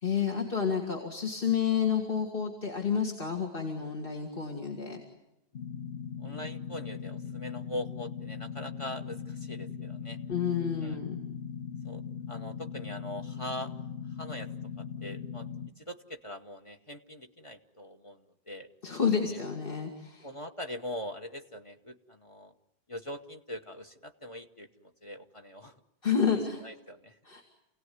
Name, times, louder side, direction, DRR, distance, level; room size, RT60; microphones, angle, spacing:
voice 1, 0.0-5.0 10.3-11.2 18.8-20.3 26.0-26.6 27.2-27.4, left 7 dB, 60° left, 0 dB, 2.7 m, -30 dB
sound 1, 5.5-15.7, left 7 dB, 75° left, 1.4 m, -39 dB
voice 2, 6.2-10.2 10.8-11.0 11.8-13.8 14.1-14.5 14.8-15.5 15.8-18.7 19.3-19.4 20.2-22.5 22.9-25.8 26.6-27.2, left 1 dB, 30° left, 7 dB, 1.2 m, -42 dB
28.5 x 17.5 x 9.6 m, 0.92 s
omnidirectional pair, 1.1 m